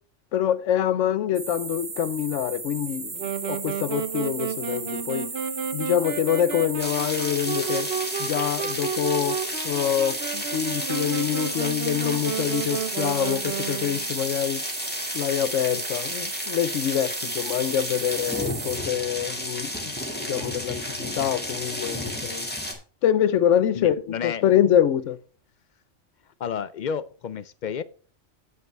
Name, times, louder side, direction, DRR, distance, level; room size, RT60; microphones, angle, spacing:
voice 1, 0.3-5.3 5.7-7.9 8.2-9.4 9.6-14.6 15.1-19.9 20.3-22.5 23.0-24.0 24.2-25.2, left 10 dB, 80° left, 1.0 m, -25 dB
sound 1, 1.3-18.8, right 4 dB, 30° right, 0.8 m, -36 dB
Wind instrument woodwind instrument, 3.2-14.1, right 7 dB, 60° right, 1.0 m, -32 dB
sound 2, 6.8-22.7, left 1 dB, 10° left, 1.9 m, -32 dB
voice 2, 23.7-24.5 26.4-27.8, left 7 dB, 60° left, 0.5 m, -31 dB
9.3 x 8.2 x 3.3 m
omnidirectional pair, 1.3 m